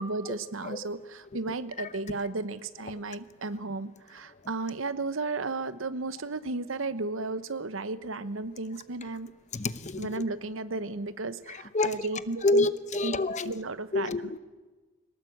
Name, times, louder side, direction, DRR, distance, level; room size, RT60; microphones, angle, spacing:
voice 1, 0.0-9.3 10.0-12.7 13.0-13.2 13.4-14.4, right 3 dB, 75° right, 1.0 m, -34 dB
voice 2, 9.5-10.2 11.5-12.0 12.4-13.5 13.9-14.4, left 2 dB, 35° left, 0.9 m, -28 dB
22.5 x 19.0 x 8.0 m
head